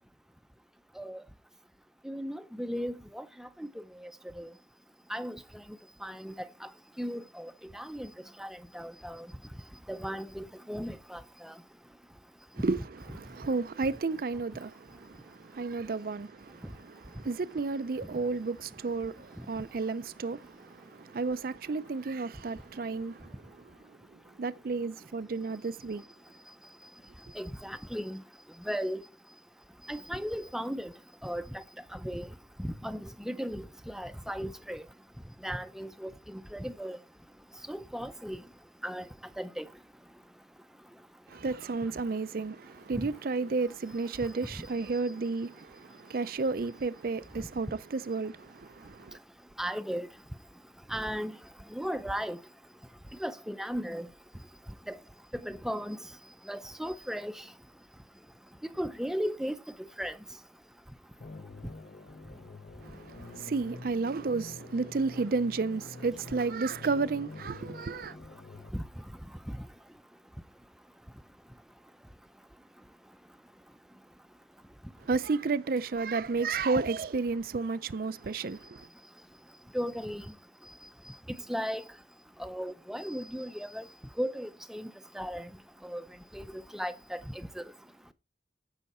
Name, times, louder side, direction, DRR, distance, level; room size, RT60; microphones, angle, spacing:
voice 1, 2.1-3.7 4.4-4.5 5.1-5.4 6.0-6.3 7.0-8.1 8.4-9.3 9.9-11.5 27.4-28.2 28.7-29.0 29.9-30.9 31.2-31.6 31.9-32.3 32.6-34.8 35.4-37.0 37.7-38.4 38.8-39.0 39.4-39.7 49.6-50.1 50.9-51.3 51.7-52.4 53.2-54.1 54.9-55.0 55.4-56.0 56.5-57.3 58.8-59.5 60.0-60.2 79.7-80.2 81.5-81.8 82.4-83.8 84.2-84.9 85.2-85.5 85.8-86.0 86.3-86.4 86.7-87.2, equal, 5° right, 0.5 m, -36 dB
voice 2, 12.6-23.4 24.4-26.0 41.3-49.2 62.8-68.1 75.0-78.8, right 4 dB, 55° right, 0.4 m, -32 dB
sound 1, 61.2-68.7, left 3 dB, 50° left, 0.8 m, -47 dB
14.5 x 5.7 x 4.2 m
head